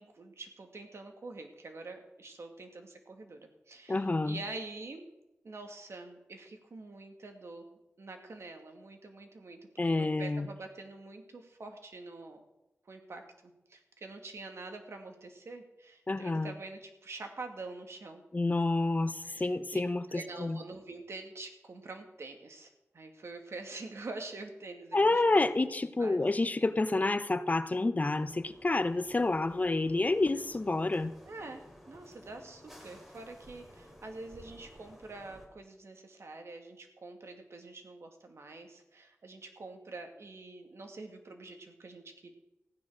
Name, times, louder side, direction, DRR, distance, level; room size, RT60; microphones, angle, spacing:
voice 1, 0.0-5.1 5.4-9.6 9.9-12.5 12.9-18.2 19.2-19.8 20.1-25.2 26.0-26.2 31.3-42.3, right 3 dB, 70° right, 4 dB, 2.4 m, -46 dB
voice 2, 3.9-4.4 9.8-10.5 16.1-16.5 18.3-20.0 20.4-20.6 24.9-31.1, left 2 dB, 35° left, 13 dB, 0.9 m, -28 dB
sound 1, 28.0-35.5, equal, 5° right, 3.7 m, -55 dB
15.0 x 9.8 x 6.4 m, 0.93 s
wide cardioid pair, 80°, 5 cm